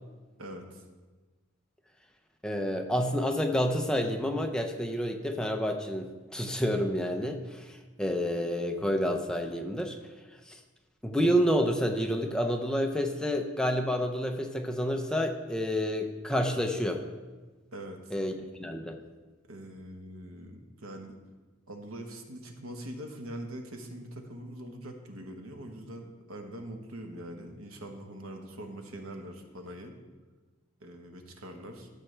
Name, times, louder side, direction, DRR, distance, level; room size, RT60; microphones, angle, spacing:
voice 1, 0.4-0.8 17.7-18.1 19.5-21.1 21.7-29.9 30.8-31.9, right 1 dB, 90° right, 4 dB, 1.1 m, -43 dB
voice 2, 2.4-10.0 10.5-10.6 11.0-17.0 18.1-18.3 18.6-19.0, equal, 5° left, 4 dB, 0.6 m, -29 dB
13.0 x 6.7 x 3.3 m, 1.3 s
head